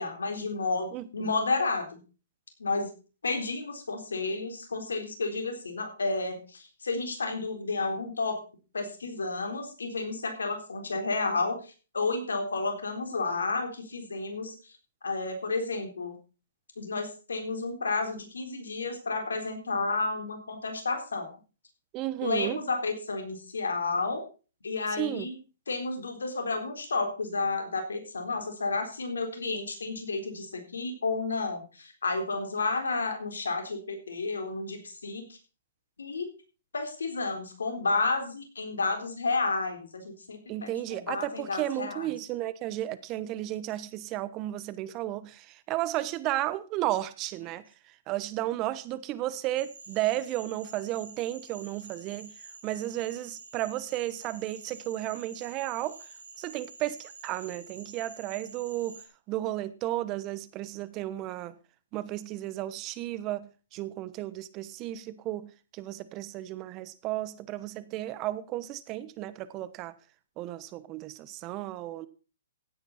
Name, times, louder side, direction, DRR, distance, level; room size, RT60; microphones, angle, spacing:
voice 1, 0.0-2.0 2.6-2.9 3.2-8.4 8.7-14.7 15.0-16.2 16.8-21.3 22.2-24.2 24.6-25.3 25.7-35.4 36.0-36.3 36.7-42.1, left 3 dB, 85° left, 4.0 m, -31 dB
voice 2, 0.9-1.3 21.9-22.6 25.0-25.3 40.5-52.3 52.6-56.0 56.4-59.0 59.3-61.6 61.9-69.9 70.4-72.1, right 14 dB, 30° right, 1.0 m, -33 dB
Cricket / Frog, 49.6-59.1, right 4 dB, 85° right, 4.3 m, -48 dB
15.5 x 9.0 x 4.2 m
hypercardioid pair, 135°, 0 cm